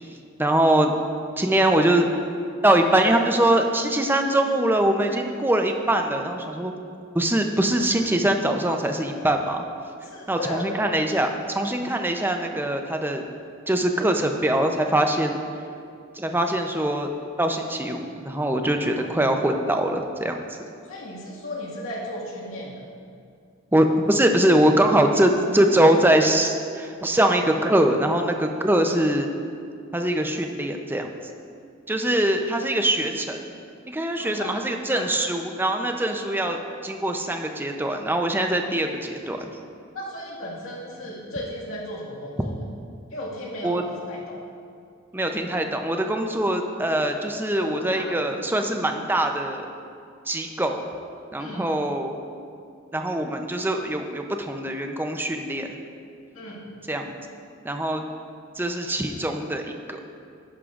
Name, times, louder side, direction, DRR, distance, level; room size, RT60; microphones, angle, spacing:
voice 1, 0.1-0.9 1.4-2.1 2.6-6.7 7.1-9.6 10.3-13.2 13.7-15.4 16.1-17.1 17.4-20.6 23.7-29.3 29.9-31.1 31.9-33.5 33.9-39.5 43.6-43.8 45.1-49.7 50.3-50.8 51.3-52.2 52.9-55.7 56.9-57.2 57.6-58.0 58.5-60.0, right 1 dB, 10° right, 4 dB, 0.5 m, -23 dB
voice 2, 10.0-10.8 19.0-19.1 20.9-22.9 34.2-34.5 34.9-35.0 39.9-42.5 43.1-44.4 47.6-48.1 51.4-51.7 56.3-56.7, left 1 dB, 85° left, -4 dB, 1.9 m, -35 dB
11.0 x 11.0 x 2.5 m, 2.4 s
head